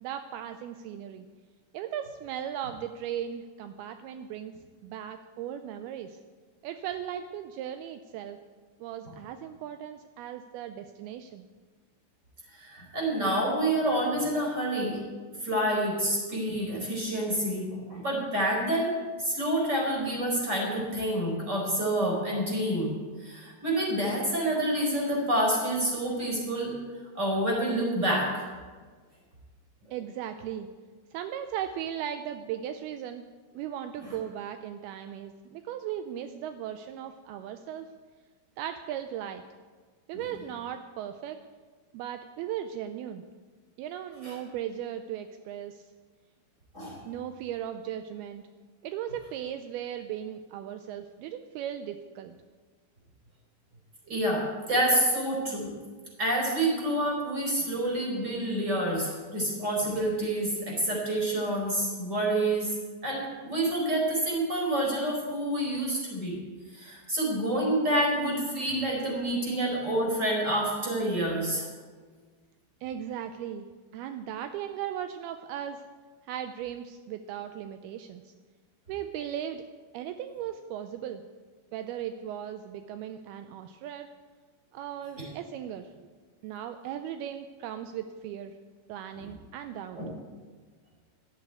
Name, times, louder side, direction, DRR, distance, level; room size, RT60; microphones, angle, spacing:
voice 1, 0.0-1.3 1.7-4.5 4.8-6.2 6.6-8.4 8.8-11.4 29.9-30.7 31.1-33.2 33.5-37.9 38.6-39.4 40.1-41.4 41.9-43.2 43.8-45.8 47.0-48.4 48.8-52.4 72.8-73.7 73.9-75.8 76.2-78.3 78.9-79.6 79.9-81.2 81.7-84.1 84.7-85.9 86.4-88.5 88.9-90.0, right 10 dB, 85° right, 8 dB, 2.3 m, -37 dB
voice 2, 12.5-15.0 15.4-18.9 19.2-22.9 23.2-26.7 27.1-28.5 34.0-34.2 40.1-40.2 44.2-44.4 46.7-47.0 54.1-55.7 56.2-62.7 63.0-66.4 66.7-71.7 85.2-85.3 90.0-90.1, right 1 dB, 15° right, -2 dB, 4.1 m, -28 dB
13.5 x 8.2 x 9.2 m, 1.5 s
omnidirectional pair, 5.0 m